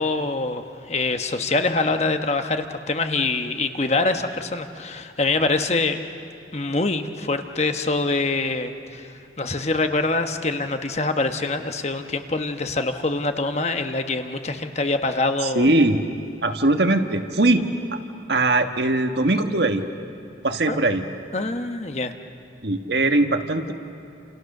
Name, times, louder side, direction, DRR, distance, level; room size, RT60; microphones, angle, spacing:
voice 1, 0.0-6.0 6.5-9.1 9.4-15.7 20.7-20.8 21.3-22.1, left 3 dB, 35° left, 7 dB, 1.2 m, -24 dB
voice 2, 15.4-16.0 16.4-18.0 18.3-19.8 20.4-21.0 22.6-23.7, right 2 dB, 65° right, 6 dB, 1.5 m, -21 dB
29.5 x 28.5 x 6.7 m, 2.8 s
head